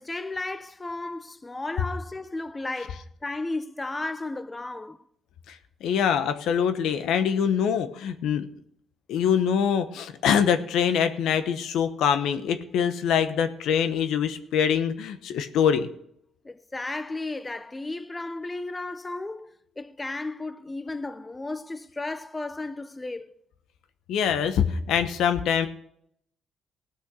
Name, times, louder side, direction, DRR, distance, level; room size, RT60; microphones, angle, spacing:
voice 1, 0.0-5.0 16.4-23.3, left 2 dB, 20° left, 0.6 m, -34 dB
voice 2, 5.8-8.5 9.1-15.9 24.1-25.7, left 8 dB, 80° left, 1.0 m, -24 dB
17.0 x 6.3 x 6.3 m
cardioid pair, 90°, 0 cm